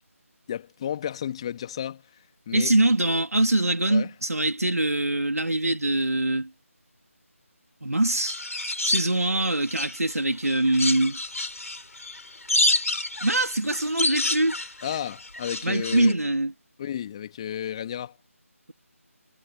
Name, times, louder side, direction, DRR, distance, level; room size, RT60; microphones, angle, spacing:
voice 1, 0.5-2.7 3.9-4.1 14.8-16.2 16.8-18.2, left 10 dB, 20° left, 2.0 m, -33 dB
voice 2, 2.5-6.5 7.8-8.4 8.8-11.2 13.2-14.7 15.6-16.5, right 1 dB, 85° right, 2.8 m, -23 dB
sound 1, 8.3-10.1 10.4-16.1, left 2 dB, 70° left, 3.1 m, -28 dB
figure-of-eight pair, 160°, 8 cm